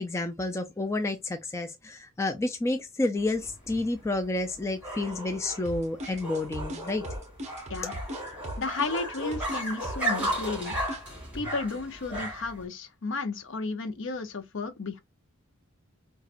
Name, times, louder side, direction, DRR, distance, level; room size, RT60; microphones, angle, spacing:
voice 1, 0.0-7.1, left 2 dB, 15° left, 0.3 m, -30 dB
sound 1, 3.2-12.6, right 1 dB, 5° right, 2.6 m, -35 dB
sound 2, 5.7-11.1, right 1 dB, 35° right, 0.7 m, -38 dB
voice 2, 8.6-10.7 11.3-15.0, left 3 dB, 60° left, 0.7 m, -33 dB
4.2 x 2.4 x 2.4 m
head